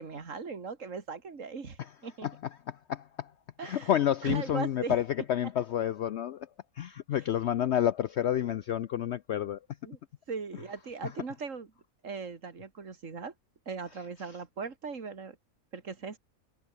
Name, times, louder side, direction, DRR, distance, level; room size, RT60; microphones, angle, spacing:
voice 1, 0.0-2.3 3.6-4.0 4.2-5.0 7.1-7.2 9.8-10.0 10.3-11.7 12.0-13.3 13.7-15.4 15.7-16.2, right 5 dB, 60° right, 2.7 m, -39 dB
voice 2, 2.9-3.3 3.6-6.5 6.8-9.6, left 10 dB, 65° left, 0.8 m, -29 dB
omnidirectional pair, 1.5 m